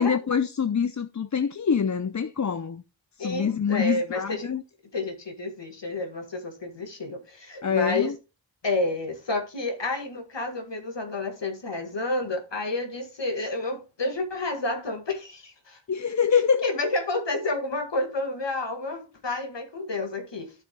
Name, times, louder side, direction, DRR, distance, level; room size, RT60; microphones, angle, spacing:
voice 1, 0.0-2.8 3.2-4.6 7.6-8.1 15.9-16.7, left 6 dB, 40° left, 0.5 m, -25 dB
voice 2, 3.2-4.5 4.9-8.1 8.6-15.8 16.3-20.5, left 2 dB, 70° left, 1.9 m, -30 dB
12.5 x 7.0 x 2.2 m
wide cardioid pair, 65°, 45 cm